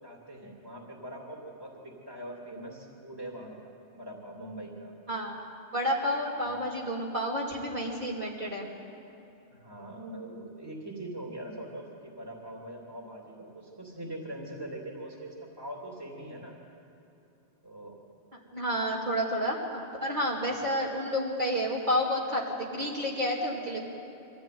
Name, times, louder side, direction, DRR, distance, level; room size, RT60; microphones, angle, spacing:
voice 1, 0.0-4.9 6.5-6.6 9.5-16.6 17.6-18.0 20.6-20.7, right 1 dB, 20° right, -1 dB, 2.9 m, -42 dB
voice 2, 5.1-5.4 5.7-8.7 18.5-23.8, equal, 45° right, -5 dB, 2.8 m, -30 dB
25.0 x 15.0 x 9.4 m, 2.8 s
omnidirectional pair, 1.1 m